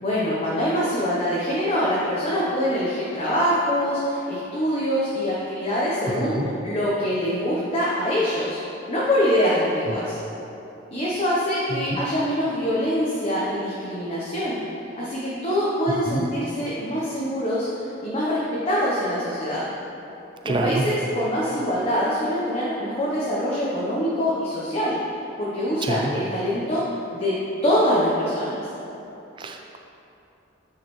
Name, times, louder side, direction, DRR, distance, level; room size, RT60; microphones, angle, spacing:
voice 1, 0.0-8.6 8.9-10.2 10.9-14.6 15.0-19.7 20.4-25.0 25.4-26.8 27.1-27.4 27.6-28.7, equal, 30° left, -7 dB, 0.8 m, -24 dB
voice 2, 6.2-6.5 11.9-12.0 15.9-16.3 20.5-20.8 25.8-26.1 29.4-29.8, right 2 dB, 25° right, 4 dB, 0.4 m, -27 dB
9.4 x 4.8 x 3.1 m, 3.0 s
head